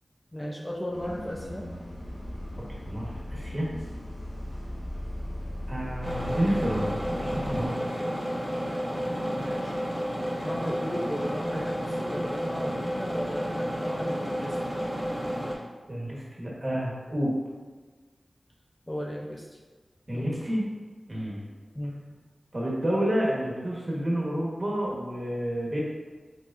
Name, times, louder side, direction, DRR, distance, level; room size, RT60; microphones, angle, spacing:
voice 1, 0.3-1.7 9.4-9.8 10.4-14.6 18.9-19.6 20.1-20.4 21.7-22.0, equal, 15° left, -1 dB, 0.4 m, -35 dB
Bus, 0.9-7.7, left 1 dB, 50° left, 1.1 m, -38 dB
voice 2, 2.8-3.7 5.7-8.2 15.9-17.4 20.1-20.6 21.1-21.4 22.5-25.8, equal, 35° right, -4 dB, 1.2 m, -29 dB
sound 1, 6.0-15.5, equal, ahead, 1.0 m, -31 dB
4.8 x 4.1 x 2.5 m, 1.4 s
wide cardioid pair, 85°, 0 cm